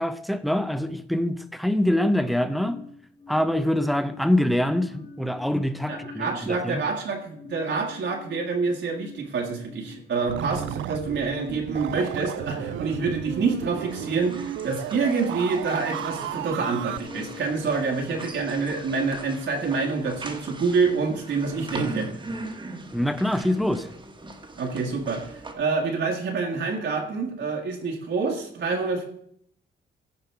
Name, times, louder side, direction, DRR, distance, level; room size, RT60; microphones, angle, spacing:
voice 1, 0.0-2.8 3.3-6.8 22.9-23.9, left 1 dB, ahead, 0.6 m, -24 dB
sound 1, 2.2-19.8, left 6 dB, 35° left, 1.9 m, -45 dB
voice 2, 5.9-22.1 24.6-29.0, right 4 dB, 65° right, 1.7 m, -27 dB
sound 2, 10.3-17.0, right 13 dB, 85° right, 0.4 m, -33 dB
sound 3, 13.9-25.5, right 2 dB, 25° right, 1.4 m, -40 dB
15.0 x 5.4 x 4.6 m
cardioid pair, 125°, 20 cm